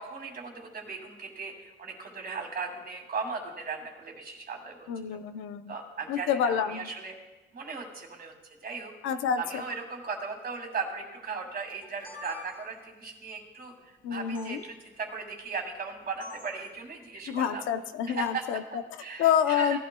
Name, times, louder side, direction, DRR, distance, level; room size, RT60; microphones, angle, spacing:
voice 1, 0.0-5.2 5.7-7.1 7.5-8.3 8.6-8.9 9.4-17.6 18.1-18.4 19.0-19.8, right 5 dB, 50° right, 3 dB, 2.4 m, -37 dB
voice 2, 4.9-5.7 6.1-6.9 9.0-9.6 14.0-14.6 17.3-18.8 19.2-19.8, left 8 dB, 90° left, 9 dB, 0.7 m, -28 dB
sound 1, 11.7-12.9 14.4-14.5 16.2-16.6, left 2 dB, 45° left, 2.8 m, -45 dB
17.5 x 12.0 x 2.3 m, 1.1 s
cardioid pair, 90°, 20 cm